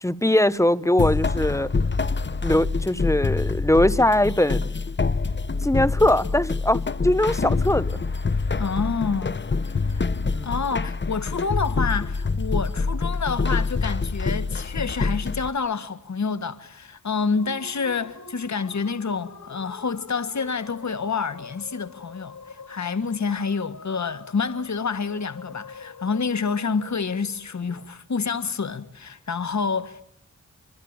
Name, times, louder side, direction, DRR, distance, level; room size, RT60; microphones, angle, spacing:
voice 1, 0.0-1.7 2.4-4.7 5.6-8.0 10.3-10.5, left 1 dB, 10° left, 1.2 m, -21 dB
sound 1, 1.0-15.5, left 4 dB, 40° left, 1.0 m, -26 dB
voice 2, 8.6-9.4 9.8-10.0 10.4-30.0, left 5 dB, 70° left, 1.7 m, -28 dB
sound 2, 17.3-27.8, left 4 dB, 90° left, 3.8 m, -45 dB
27.0 x 24.5 x 8.9 m
wide cardioid pair, 70°, 29 cm